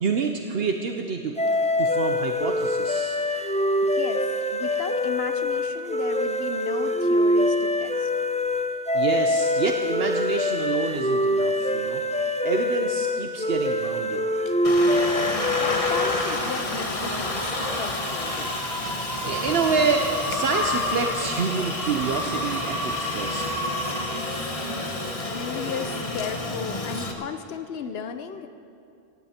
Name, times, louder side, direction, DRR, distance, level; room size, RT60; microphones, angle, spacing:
voice 1, 0.0-3.2 8.9-14.3 19.2-23.4, right 5 dB, 65° right, 4 dB, 1.0 m, -28 dB
sound 1, 1.4-16.4, left 1 dB, 10° left, 0.4 m, -24 dB
voice 2, 3.8-4.2 4.5-8.1 14.5-14.6 15.3-18.6 25.2-28.5, left 7 dB, 70° left, 9 dB, 1.0 m, -35 dB
Aircraft, 14.6-27.1, left 2 dB, 35° left, 1.2 m, -30 dB
sound 2, 14.8-24.6, equal, 20° right, 3.4 m, -34 dB
17.0 x 16.0 x 4.4 m, 2.6 s
omnidirectional pair, 1.1 m